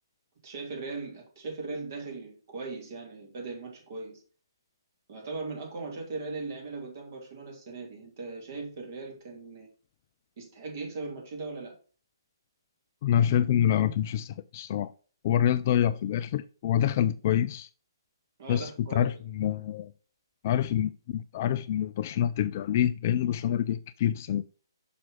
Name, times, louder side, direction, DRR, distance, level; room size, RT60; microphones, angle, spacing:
voice 1, 0.4-4.2 5.1-9.7 10.4-11.8 18.4-19.2 19.5-19.6, right 3 dB, 45° right, 2.9 m, -39 dB
voice 2, 13.0-14.9 15.2-17.7 18.5-19.9 20.4-24.5, left 10 dB, 35° left, 0.3 m, -26 dB
6.0 x 6.0 x 3.9 m
figure-of-eight pair, 130°, 2 cm